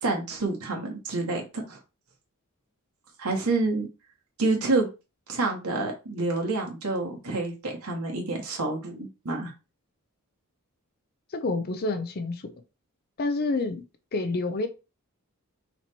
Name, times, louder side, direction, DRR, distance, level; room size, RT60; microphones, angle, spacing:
voice 1, 0.0-1.8 3.2-3.9 4.4-4.9 5.3-9.5, right 3 dB, 80° right, 1 dB, 1.2 m, -28 dB
voice 2, 11.3-12.5 13.2-13.8 14.1-14.7, left 3 dB, 45° left, 8 dB, 0.5 m, -28 dB
4.1 x 2.9 x 4.3 m, 0.29 s
head